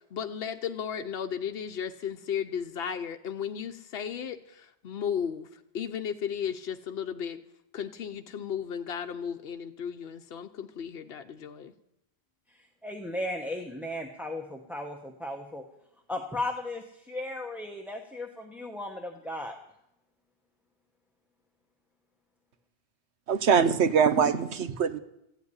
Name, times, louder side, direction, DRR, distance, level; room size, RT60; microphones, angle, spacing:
voice 1, 0.1-7.4 7.7-11.7, left 8 dB, 65° left, 4 dB, 1.0 m, -35 dB
voice 2, 12.5-15.6 16.1-19.5, left 1 dB, ahead, 2 dB, 1.1 m, -36 dB
voice 3, 23.3-25.0, right 6 dB, 90° right, 11 dB, 1.2 m, -23 dB
15.0 x 8.2 x 9.7 m, 0.83 s
omnidirectional pair, 1.1 m